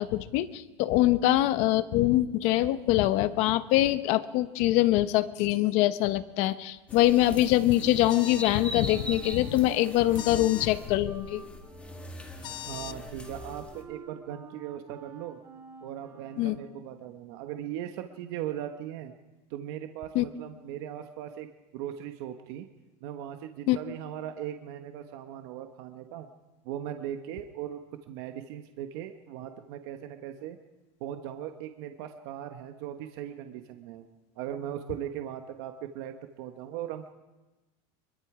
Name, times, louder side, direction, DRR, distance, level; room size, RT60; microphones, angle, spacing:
voice 1, 0.0-11.4 16.4-16.6 20.1-20.2 23.7-23.8, left 15 dB, 45° left, 12 dB, 1.0 m, -24 dB
sound 1, 6.9-13.8, left 1 dB, 10° left, 2.1 m, -42 dB
sound 2, 8.1-8.5 10.1-10.7 12.4-13.0, left 12 dB, 30° left, 0.6 m, -40 dB
Wind instrument woodwind instrument, 8.3-16.9, right 4 dB, 20° right, 3.6 m, -49 dB
voice 2, 12.7-15.4 15.8-19.1 19.5-21.5 21.7-22.7 23.0-26.3 26.6-27.8 28.1-30.6 31.0-34.0 34.4-37.1, right 11 dB, 55° right, 6 dB, 1.2 m, -39 dB
25.0 x 22.5 x 5.0 m, 1.1 s
supercardioid pair, 165°, 15 cm